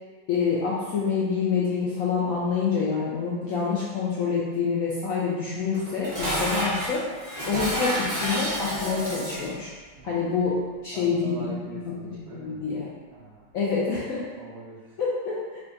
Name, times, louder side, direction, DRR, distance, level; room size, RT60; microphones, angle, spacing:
voice 1, 0.3-7.0 7.5-9.7 10.0-11.5 11.9-12.9 13.5-14.2 15.0-15.6, left 5 dB, 75° left, -6 dB, 0.7 m, -27 dB
Dishes pots and pans, 5.7-9.5, equal, 20° right, 1.0 m, -29 dB
voice 2, 10.0-10.3 10.9-12.6 13.1-13.5 14.4-15.0, right 2 dB, 65° right, -9 dB, 0.6 m, -43 dB
3.4 x 2.3 x 3.8 m, 1.4 s
omnidirectional pair, 1.9 m